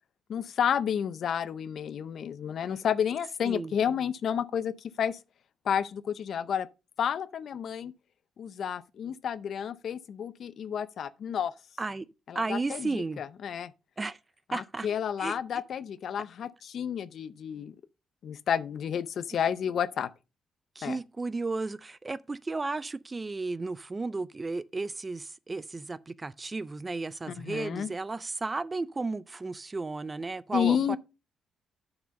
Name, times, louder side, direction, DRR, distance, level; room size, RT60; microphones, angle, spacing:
voice 1, 0.3-5.2 5.6-6.7 7.0-7.9 8.4-11.5 12.3-13.7 14.5-17.7 18.2-20.1 20.8-21.0 27.3-27.9 30.5-31.0, left 8 dB, 50° left, 0.5 m, -31 dB
voice 2, 12.3-13.2 14.0-14.2 14.5-14.9 15.2-15.4 20.8-31.0, right 3 dB, 20° right, 0.3 m, -34 dB
7.6 x 5.9 x 5.2 m
cardioid pair, 160°, 0 cm